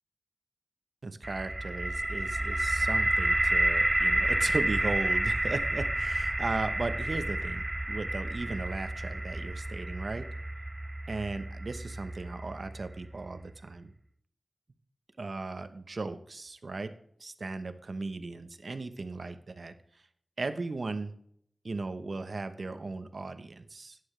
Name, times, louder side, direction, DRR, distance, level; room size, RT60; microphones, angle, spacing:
voice 1, 1.0-10.3 11.1-13.9 15.2-16.9 17.2-19.7 20.4-21.1 21.6-24.0, right 3 dB, 65° right, 10 dB, 0.9 m, -37 dB
sound 1, 1.2-13.1, right 1 dB, 25° right, 0.5 m, -30 dB
11.5 x 9.5 x 3.3 m, 0.66 s
wide cardioid pair, 50°, 0 cm